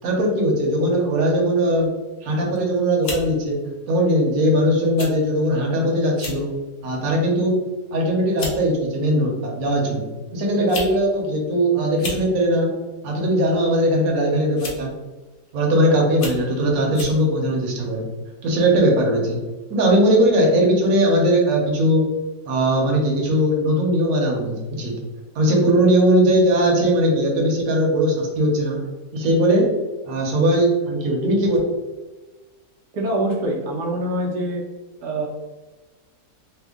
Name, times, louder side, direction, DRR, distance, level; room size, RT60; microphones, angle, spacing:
voice 1, 0.0-1.9 2.2-3.6 3.9-6.5 6.8-7.6 7.9-12.7 13.0-14.9 15.5-18.1 18.4-19.4 19.7-22.1 22.5-24.9 25.3-28.8 29.1-29.7 30.1-31.6, right 1 dB, 70° right, -1 dB, 1.2 m, -19 dB
sound 1, 2.4-2.6 3.0-3.3 4.1-4.3 5.0-5.1 5.4-5.6 6.1-6.4 6.9-7.2 8.0-8.1 8.4-8.6 9.7-9.8 10.5-10.9 11.2-11.3 11.9-12.2 13.5-13.8 14.6-14.9 15.5-15.6 16.1-16.4 16.9-17.2, left 2 dB, 65° left, 1.2 m, -32 dB
voice 2, 32.9-34.6 35.0-35.3, right 1 dB, 90° right, -1 dB, 1.1 m, -24 dB
3.4 x 2.2 x 3.5 m, 1.2 s
omnidirectional pair, 1.6 m